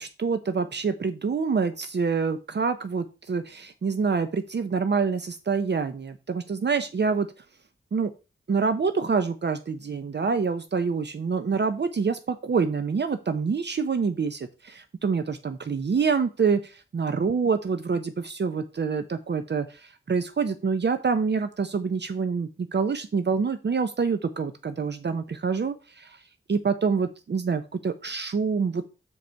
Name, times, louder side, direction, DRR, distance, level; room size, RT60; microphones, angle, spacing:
voice 1, 0.0-7.3 7.9-8.1 8.5-19.7 20.1-26.2 26.5-28.8, right 5 dB, 55° right, 10 dB, 0.7 m, -26 dB
7.1 x 5.1 x 4.6 m, 0.31 s
wide cardioid pair, 85°, 21 cm